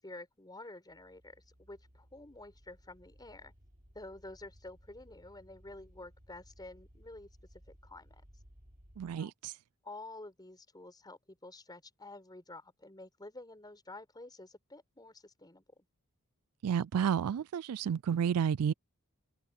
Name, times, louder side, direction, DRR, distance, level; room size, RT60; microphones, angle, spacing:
voice 1, 0.0-3.5 3.9-8.2 9.1-9.3 9.8-15.9, left 2 dB, 20° left, 4.8 m, -50 dB
sound 1, 0.9-9.2, equal, 40° right, 5.0 m, -60 dB
voice 2, 9.0-9.5 16.6-18.7, right 8 dB, 75° right, 0.4 m, -31 dB
head